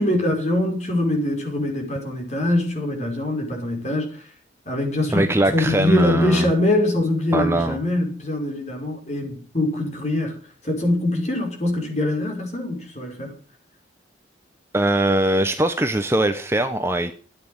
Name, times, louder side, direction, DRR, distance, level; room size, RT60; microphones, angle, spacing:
voice 1, 0.0-4.3 4.7-10.3 10.6-13.4, left 1 dB, 35° left, 5.4 m, -23 dB
voice 2, 5.1-6.5 7.3-7.8 14.7-17.1, right 1 dB, 15° right, 0.9 m, -21 dB
14.0 x 9.5 x 8.0 m
head